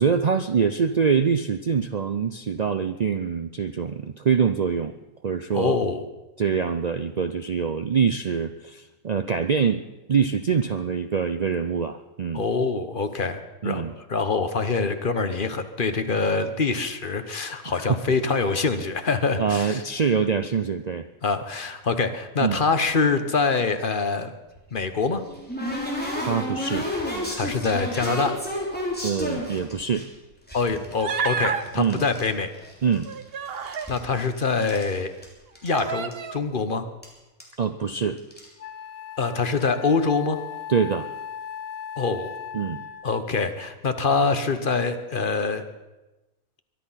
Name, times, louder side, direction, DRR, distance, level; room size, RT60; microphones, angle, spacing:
voice 1, 0.0-4.9 5.2-5.8 6.4-9.8 10.1-12.4 13.6-13.9 17.7-18.0 19.4-21.1 22.4-22.6 26.2-26.9 29.0-30.1 31.7-32.1 32.8-33.1 37.6-38.2 40.7-41.1 42.5-42.8, right 6 dB, 80° right, 9 dB, 0.3 m, -24 dB
voice 2, 5.5-6.0 12.3-19.8 21.2-24.3 24.7-25.2 27.4-28.4 30.5-32.5 33.9-35.1 35.6-36.8 39.2-40.4 42.0-42.3 43.0-45.6, left 4 dB, 40° left, 9 dB, 1.1 m, -25 dB
sound 1, 24.6-30.0 30.5-32.3 32.5-33.3 33.6-34.9 35.2-35.3 35.5-35.8 36.1-36.2 37.0-37.1 37.4-37.6 38.2-38.5, left 1 dB, 5° left, 3.3 m, -31 dB
Human voice, 31.0-31.6 32.8-33.9 34.7-34.8 35.7-36.4, right 6 dB, 50° right, 0.9 m, -29 dB
Wind instrument woodwind instrument, 38.0-38.1 38.6-43.2, left 8 dB, 75° left, 1.4 m, -38 dB
23.0 x 11.0 x 5.7 m, 1.1 s
omnidirectional pair, 1.5 m